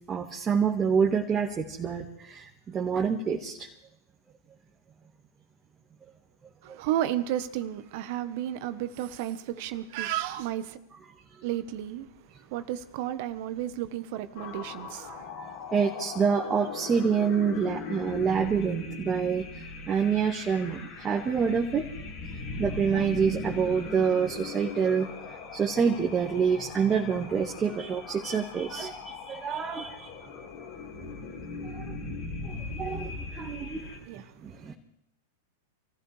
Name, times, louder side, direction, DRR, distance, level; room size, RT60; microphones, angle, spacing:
voice 1, 0.1-3.6 15.7-19.5 19.9-21.9 22.6-25.1 25.5-30.1 31.6-32.0 32.4-33.9 34.4-34.7, right 6 dB, 25° right, 1.9 m, -27 dB
voice 2, 6.6-10.8 11.4-12.1 12.5-15.3 32.7-32.8 33.2-33.3 34.0-34.4, right 12 dB, 55° right, 1.2 m, -33 dB
sound 1, 14.4-34.0, left 3 dB, 50° left, 3.6 m, -39 dB
27.5 x 15.5 x 3.4 m
hypercardioid pair, 100°, 0 cm